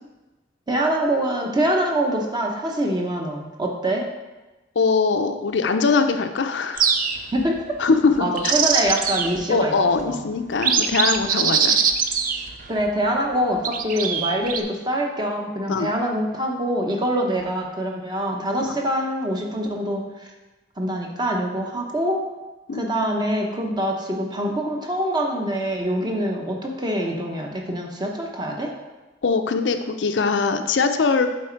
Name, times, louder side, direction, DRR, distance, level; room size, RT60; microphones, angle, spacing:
voice 1, 0.7-4.1 7.3-7.6 8.2-9.8 10.0-10.3 12.7-20.3 20.8-22.2 22.7-28.7, right 1 dB, 25° right, 1 dB, 0.9 m, -24 dB
voice 2, 4.8-6.9 7.8-8.5 9.5-11.8 15.7-15.9 18.6-18.7 22.7-22.8 29.2-31.3, left 4 dB, 80° left, 7 dB, 0.5 m, -21 dB
sound 1, 6.8-7.4 8.2-9.4 10.0-10.1 10.5-12.9 13.6-14.6, right 6 dB, 45° right, 0.5 m, -22 dB
7.7 x 4.2 x 4.5 m, 1.1 s
head